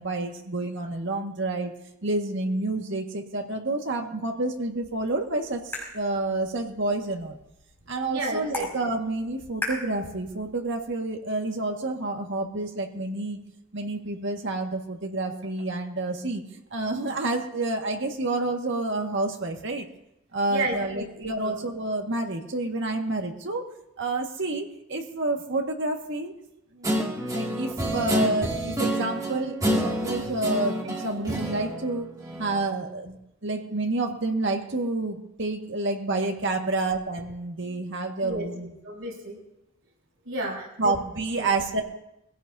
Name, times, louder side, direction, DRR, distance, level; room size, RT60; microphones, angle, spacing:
voice 1, 0.0-1.7 2.0-7.4 7.9-13.4 13.7-19.9 20.3-23.7 24.0-26.3 26.7-32.1 32.4-38.7 40.8-41.8, right 2 dB, 60° right, 2 dB, 1.8 m, -29 dB
sound 1, 4.8-10.8, left 2 dB, 10° left, 6.0 m, -40 dB
voice 2, 8.1-8.7 20.5-21.0 21.4-21.5 38.2-38.5 38.8-39.4 40.3-40.9 41.3-41.5, right 1 dB, 90° right, -4 dB, 7.3 m, -32 dB
Guitar, 26.8-32.7, equal, 15° right, 2.4 m, -28 dB
22.5 x 16.0 x 2.8 m, 0.85 s
head